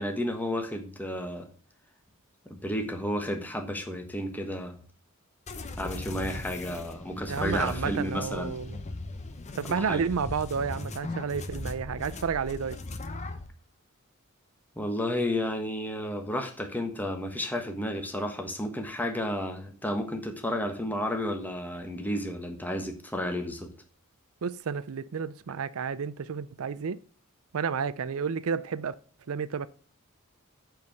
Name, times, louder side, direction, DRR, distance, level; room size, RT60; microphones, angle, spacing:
voice 1, 0.0-1.5 2.4-4.8 5.8-8.5 9.7-10.0 14.8-23.7, left 1 dB, 10° left, 1.3 m, -32 dB
sound 1, 5.5-13.5, left 2 dB, 30° left, 0.8 m, -38 dB
voice 2, 7.3-8.8 9.5-12.8 24.4-27.0 27.5-28.9 29.3-29.7, right 6 dB, 75° right, 0.5 m, -31 dB
8.4 x 4.6 x 6.4 m
head